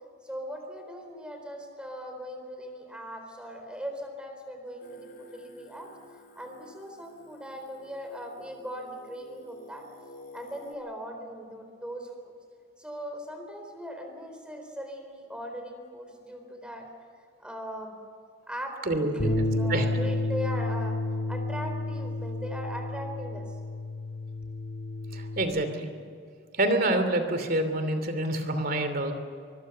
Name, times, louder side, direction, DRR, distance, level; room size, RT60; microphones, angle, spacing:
voice 1, 0.2-5.9 6.4-9.8 10.3-12.3 12.8-16.9 17.4-18.0 18.5-21.0 21.3-23.6, equal, 5° right, 4 dB, 4.0 m, -39 dB
Singing, 4.8-10.7, left 1 dB, 50° left, 4.0 m, -51 dB
voice 2, 18.8-19.9 25.1-25.9 26.5-29.1, right 1 dB, 50° right, 8 dB, 2.9 m, -27 dB
Bass guitar, 19.2-25.4, left 2 dB, 75° left, 3.8 m, -31 dB
24.0 x 22.0 x 6.8 m, 2.3 s
head